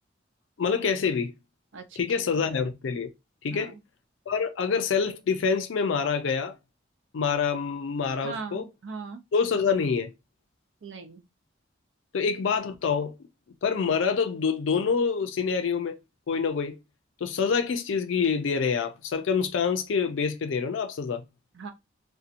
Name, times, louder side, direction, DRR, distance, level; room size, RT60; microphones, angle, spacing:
voice 1, 0.6-1.3 2.0-3.1 3.4-3.7 4.3-6.6 7.1-8.6 9.3-10.1 12.1-13.1 13.6-16.0 16.3-16.8 17.2-21.2, left 5 dB, 80° left, 0.4 m, -26 dB
voice 2, 1.7-2.5 3.5-3.8 8.2-9.2 10.8-11.3 21.5-21.7, right 4 dB, 75° right, 0.5 m, -40 dB
2.7 x 2.1 x 2.5 m
head